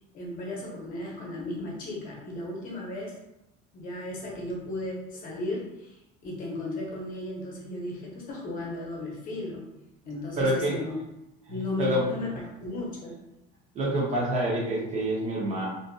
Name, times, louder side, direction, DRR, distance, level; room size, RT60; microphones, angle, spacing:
voice 1, 0.1-3.1 3.7-9.6 10.0-11.0 11.5-12.3 12.6-13.2, left 2 dB, 45° left, -2 dB, 0.7 m, -35 dB
voice 2, 10.4-10.8 11.5-12.1 13.7-15.7, right 1 dB, 35° right, -2 dB, 0.7 m, -27 dB
2.6 x 2.4 x 2.3 m, 0.90 s
cardioid pair, 145°, 20 cm